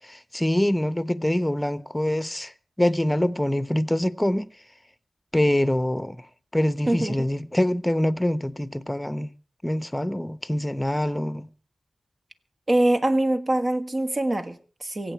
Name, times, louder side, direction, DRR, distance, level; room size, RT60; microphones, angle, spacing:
voice 1, 0.3-2.5 2.8-4.5 5.3-6.2 6.5-9.3 9.6-11.5, left 1 dB, 10° left, 0.9 m, -24 dB
voice 2, 6.9-7.3 12.7-15.1, right 1 dB, 45° right, 1.6 m, -24 dB
24.5 x 8.2 x 4.6 m
cardioid pair, 50°, 0 cm